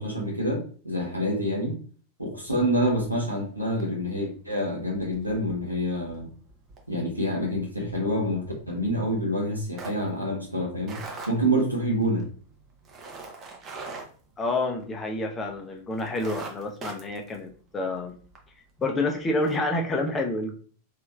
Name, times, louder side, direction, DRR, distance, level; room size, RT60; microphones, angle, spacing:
voice 1, 0.0-1.8 2.2-6.3 6.9-12.2, equal, 85° right, -2 dB, 1.2 m, -27 dB
sound 1, 2.8-3.4 3.8-4.1 4.4-15.1 15.5-15.6 15.9-18.4 18.8-18.9 19.3-19.6, right 3 dB, 30° right, 0.8 m, -43 dB
voice 2, 14.4-18.1 18.8-20.5, left 2 dB, 20° left, 3 dB, 0.6 m, -28 dB
3.4 x 3.1 x 2.4 m, 0.43 s
figure-of-eight pair, 90°, 0 cm